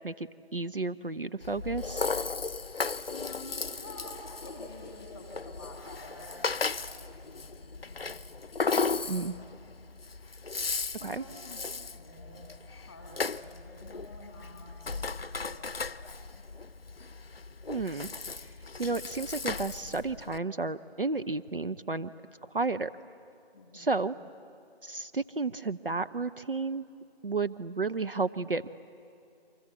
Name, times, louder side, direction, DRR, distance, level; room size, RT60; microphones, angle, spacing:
voice 1, 0.0-2.1 9.1-9.3 11.0-11.2 17.7-18.1 18.4-18.5 18.8-22.1 22.5-22.9 23.7-24.2 24.8-26.9 27.2-28.7, right 3 dB, 60° right, 12 dB, 0.8 m, -32 dB
Rattle (instrument), 1.4-20.4, left 4 dB, 65° left, 0.7 m, -36 dB
voice 2, 3.1-8.2 8.5-9.7 11.0-11.6 11.9-16.0 16.3-16.5 23.5-24.1, left 1 dB, 5° left, 0 dB, 1.6 m, -49 dB
30.0 x 24.0 x 7.9 m, 2.5 s
figure-of-eight pair, 165°, 32 cm